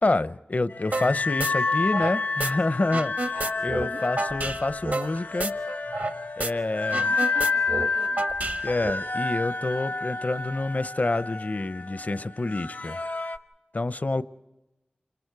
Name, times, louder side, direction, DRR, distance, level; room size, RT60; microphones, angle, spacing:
voice 1, 0.0-5.6 6.4-7.1 8.6-13.0 13.7-14.2, left 2 dB, 50° left, 0.7 m, -27 dB
sound 1, 0.7-13.4, left 4 dB, 70° left, 1.0 m, -30 dB
sound 2, 0.9-1.1 1.4-2.5 2.8-6.1 6.4-6.5 6.8-8.9, right 2 dB, 60° right, 0.9 m, -30 dB
voice 2, 3.4-4.0 6.7-8.3 14.0-14.2, right 2 dB, 80° right, 3.2 m, -47 dB
28.5 x 25.0 x 4.7 m
wide cardioid pair, 55°, 3 cm